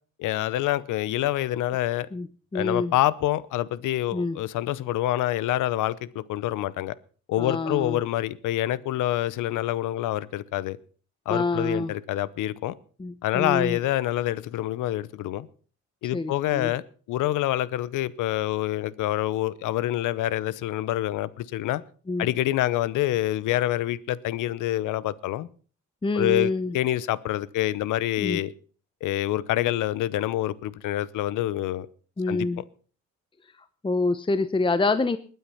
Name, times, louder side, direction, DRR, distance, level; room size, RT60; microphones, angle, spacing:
voice 1, 0.2-2.1 2.5-6.9 7.3-10.8 11.3-12.7 13.2-15.5 16.0-16.8 17.1-21.8 22.2-25.5 26.1-28.5 29.0-31.9 32.3-32.6, left 14 dB, 85° left, 20 dB, 0.9 m, -26 dB
voice 2, 2.5-2.9 4.1-4.4 7.4-8.0 11.3-11.9 13.0-13.8 16.1-16.7 22.1-22.3 26.0-26.8 28.2-28.4 32.2-32.6 33.8-35.2, left 3 dB, 15° left, 13 dB, 0.9 m, -26 dB
20.5 x 9.4 x 5.7 m, 0.41 s
cardioid pair, 90°, 30 cm